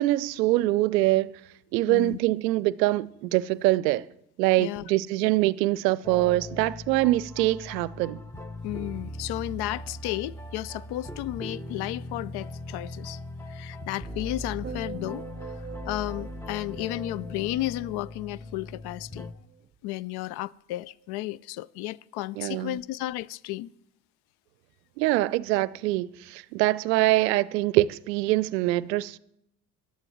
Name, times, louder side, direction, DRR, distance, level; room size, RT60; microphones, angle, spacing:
voice 1, 0.0-1.3 1.7-4.0 4.4-8.2 22.4-22.8 25.0-29.2, right 17 dB, 80° right, 0.6 m, -24 dB
voice 2, 1.9-2.2 4.6-4.8 8.6-13.2 13.5-19.3 19.8-23.7, left 16 dB, 55° left, 0.5 m, -33 dB
sound 1, 6.0-19.3, left 1 dB, 5° left, 1.0 m, -39 dB
sound 2, 14.6-19.0 19.3-19.7, right 6 dB, 25° right, 0.7 m, -44 dB
25.5 x 11.5 x 3.1 m
hypercardioid pair, 55°, 49 cm